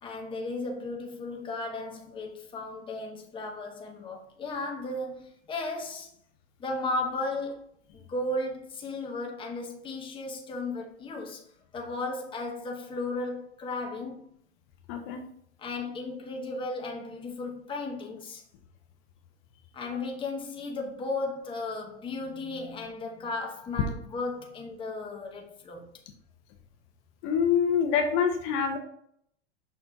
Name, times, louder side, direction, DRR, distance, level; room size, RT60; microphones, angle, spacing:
voice 1, 0.0-6.1 6.6-7.6 7.9-11.4 11.7-14.3 15.6-18.4 19.7-25.9, left 2 dB, 15° left, 1.0 m, -35 dB
voice 2, 14.9-15.2 27.2-28.8, left 7 dB, 40° left, 1.0 m, -25 dB
5.9 x 4.2 x 4.0 m
hypercardioid pair, 130°, 33 cm